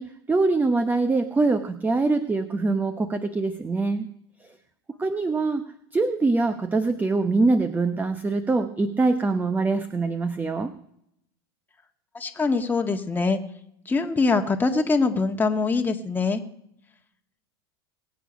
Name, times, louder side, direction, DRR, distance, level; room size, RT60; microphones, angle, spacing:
voice 1, 0.0-4.1 5.0-5.6 5.9-10.7, right 3 dB, 15° right, 10 dB, 0.9 m, -23 dB
voice 2, 12.1-13.4 13.8-16.4, left 4 dB, 15° left, 4 dB, 1.6 m, -23 dB
22.0 x 8.5 x 5.2 m, 0.73 s
hypercardioid pair, 100°, 13 cm